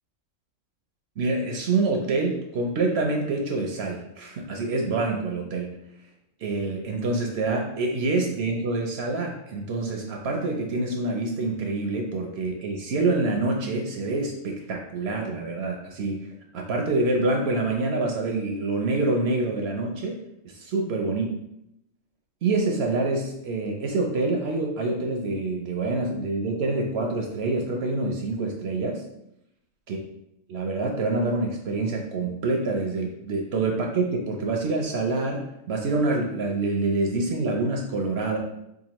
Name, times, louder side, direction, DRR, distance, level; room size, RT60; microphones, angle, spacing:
voice 1, 1.2-5.8 6.4-16.3 16.5-20.2 20.5-21.3 22.4-29.0 29.9-30.0 30.5-38.4, right 2 dB, 65° right, 1 dB, 0.7 m, -26 dB
4.9 x 2.3 x 2.9 m, 0.82 s
omnidirectional pair, 1.4 m